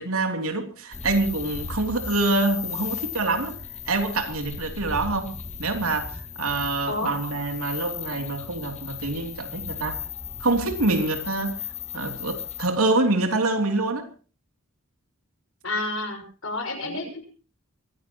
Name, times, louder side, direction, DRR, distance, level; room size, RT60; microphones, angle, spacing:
voice 1, 0.0-3.6 3.9-10.0 10.4-11.6 11.9-14.1 16.8-17.0, right 2 dB, 85° right, 3.1 m, -26 dB
sound 1, 0.9-12.7, left 7 dB, 30° left, 2.3 m, -36 dB
voice 2, 15.6-17.3, left 2 dB, 65° left, 5.9 m, -30 dB
23.5 x 16.0 x 3.0 m
head